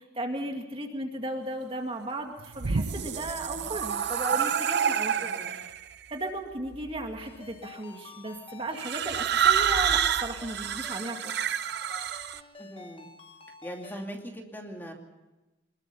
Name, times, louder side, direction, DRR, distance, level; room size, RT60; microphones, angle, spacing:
voice 1, 0.0-5.7 6.1-11.3, right 1 dB, 30° right, 3 dB, 2.3 m, -36 dB
sound 1, 2.4-5.8 6.7-7.2 8.8-12.4, right 8 dB, 55° right, 0.7 m, -28 dB
voice 2, 5.2-5.5 12.6-13.1 13.6-14.9, equal, 10° left, 1 dB, 2.8 m, -40 dB
Ringtone, 7.2-14.1, left 4 dB, 30° left, 1.5 m, -49 dB
23.5 x 21.5 x 5.5 m, 1.1 s
head